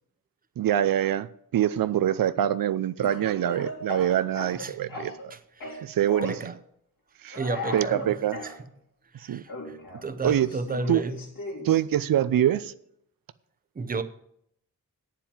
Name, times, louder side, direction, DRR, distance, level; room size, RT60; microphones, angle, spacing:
voice 1, 0.6-5.4 5.8-6.3 7.2-7.4 7.7-8.4 9.1-9.4 10.2-10.5 10.9-11.0 11.6-12.7, right 11 dB, 90° right, 0.5 m, -25 dB
Speech / Cough, 3.0-5.3 5.6-6.4 7.3-8.5 9.5-11.8, left 2 dB, 80° left, 3.6 m, -37 dB
voice 2, 5.3-5.9 6.3-6.5 7.3-8.2 8.4-8.5 9.1-11.2 13.8-14.0, right 3 dB, 25° right, 0.7 m, -33 dB
9.0 x 7.3 x 7.4 m
wide cardioid pair, 150°, 33 cm